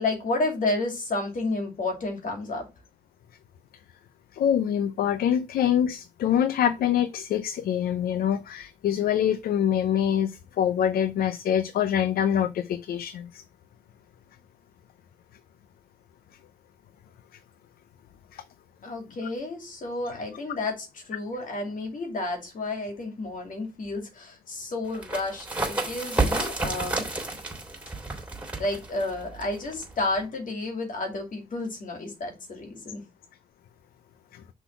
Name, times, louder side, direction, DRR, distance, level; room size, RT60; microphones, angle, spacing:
voice 1, 0.0-2.7 18.8-27.1 28.6-33.0, left 2 dB, 60° left, 2.4 m, -31 dB
voice 2, 4.3-13.4 18.3-18.4 34.3-34.4, left 9 dB, 85° left, 0.5 m, -25 dB
sound 1, 24.9-30.3, right 2 dB, 10° right, 3.2 m, -31 dB
6.0 x 4.0 x 5.7 m
cardioid pair, 70°, 15 cm